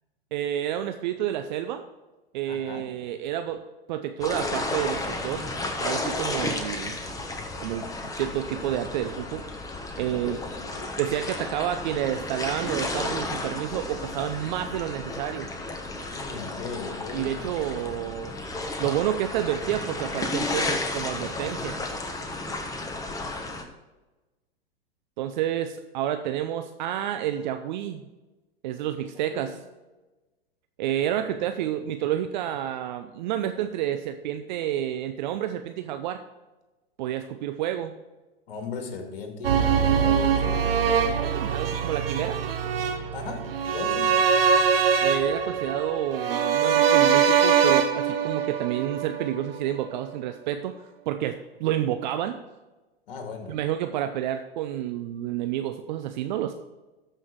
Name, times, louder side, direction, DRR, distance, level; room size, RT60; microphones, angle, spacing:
voice 1, 0.3-1.8 2.3-3.6 3.9-5.4 5.8-7.0 7.6-7.9 8.1-9.4 10.0-10.4 11.0-15.5 17.1-18.3 18.8-21.8 25.2-28.1 28.6-29.6 30.8-36.2 37.0-37.9 41.2-42.4 45.0-50.7 51.1-52.4 53.5-56.5, right 11 dB, 50° right, 8 dB, 0.7 m, -29 dB
voice 2, 2.5-2.9 10.1-10.9 16.1-17.5 28.9-29.6 38.5-40.8 43.1-44.2 53.1-53.6, left 5 dB, 65° left, 4 dB, 2.3 m, -38 dB
sound 1, 4.2-23.6, left 2 dB, 10° left, 1.3 m, -33 dB
sound 2, 39.4-49.6 49.9-50.0, right 7 dB, 75° right, 1.2 m, -23 dB
13.5 x 5.7 x 4.6 m, 1.1 s
figure-of-eight pair, 100°, 30 cm